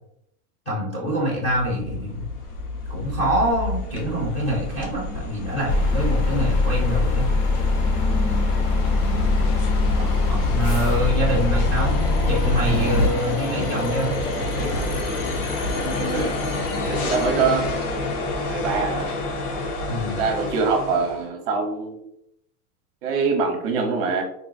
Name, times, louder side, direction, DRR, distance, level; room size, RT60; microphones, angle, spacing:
voice 1, 0.7-2.2 2.9-7.3 10.3-11.9 12.3-14.2 19.9-20.3, equal, 15° left, -4 dB, 0.6 m, -25 dB
sound 1, 1.5-21.2, left 2 dB, 80° left, 0.9 m, -28 dB
sound 2, 5.7-13.1, left 2 dB, 55° left, 0.7 m, -22 dB
voice 2, 16.8-17.6 18.5-19.1 20.2-22.0 23.0-24.2, right 4 dB, 40° right, 3 dB, 0.6 m, -24 dB
3.8 x 2.2 x 2.5 m, 0.75 s
supercardioid pair, 160°, 45 cm